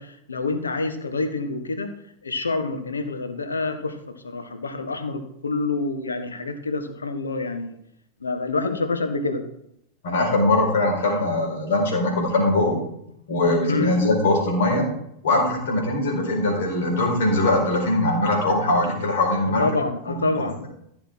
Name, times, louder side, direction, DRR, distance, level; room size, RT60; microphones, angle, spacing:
voice 1, 0.0-1.9 2.2-4.0 4.2-7.8 8.2-9.4 11.1-11.2 13.7-13.9 19.6-20.7, left 3 dB, 75° left, 7 dB, 1.5 m, -27 dB
voice 2, 10.0-12.8 13.3-14.9 15.2-19.6 20.1-20.3, left 2 dB, 60° left, 0 dB, 4.7 m, -21 dB
15.0 x 7.1 x 4.5 m, 0.75 s
figure-of-eight pair, 90°, 0 cm